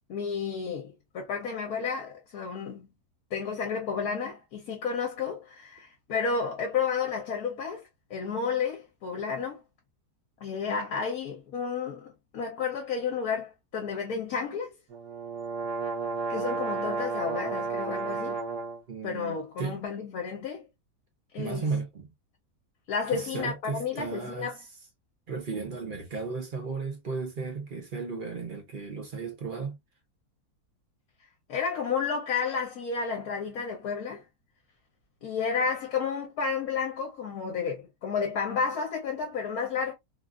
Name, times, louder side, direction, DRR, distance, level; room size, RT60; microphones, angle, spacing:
voice 1, 0.1-2.9 3.3-7.8 8.1-9.6 10.4-14.7 16.3-18.4 19.0-20.7 21.3-21.7 22.9-24.6 31.5-34.2 35.2-39.9, left 5 dB, 70° left, 1.2 m, -31 dB
sound 1, 14.9-18.8, right 4 dB, 80° right, 1.5 m, -32 dB
voice 2, 18.9-19.8 21.4-22.1 23.1-24.5 25.3-29.8, right 4 dB, 45° right, 0.7 m, -34 dB
3.5 x 2.4 x 2.4 m
omnidirectional pair, 1.7 m